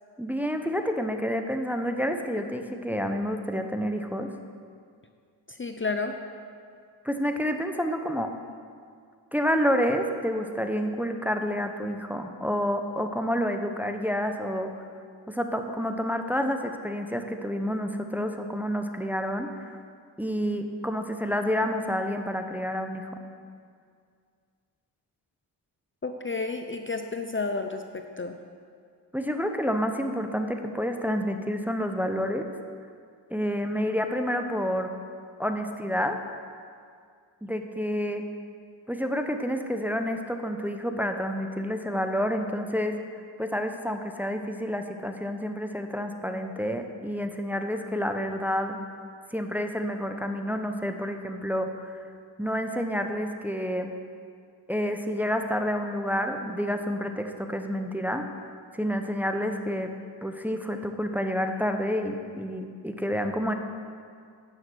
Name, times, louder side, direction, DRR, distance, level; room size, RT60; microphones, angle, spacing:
voice 1, 0.2-4.3 7.0-8.3 9.3-14.7 15.3-19.7 20.2-23.1 29.1-32.5 33.3-34.9 35.4-36.2 37.4-38.2 38.9-42.9 43.4-48.8 49.3-51.9 52.4-53.9 54.7-58.2 58.7-59.9 60.2-63.5, equal, 5° right, 5 dB, 0.8 m, -29 dB
voice 2, 5.5-6.2 26.0-28.4, left 3 dB, 30° left, 6 dB, 0.6 m, -31 dB
9.4 x 6.7 x 6.2 m, 2.2 s
cardioid pair, 55°, 44 cm